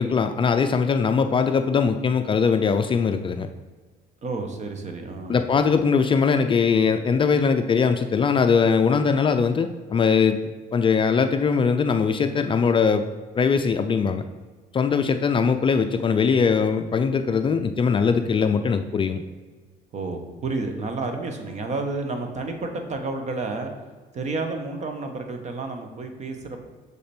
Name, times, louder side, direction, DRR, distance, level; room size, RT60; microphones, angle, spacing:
voice 1, 0.0-3.5 5.3-10.4 10.7-13.1 13.4-14.2 14.7-19.2, left 5 dB, 30° left, 8 dB, 0.4 m, -21 dB
voice 2, 4.2-5.5 19.9-23.7 24.1-26.7, right 3 dB, 45° right, 5 dB, 1.1 m, -30 dB
6.6 x 5.1 x 4.3 m, 1.4 s
cardioid pair, 110°, 17 cm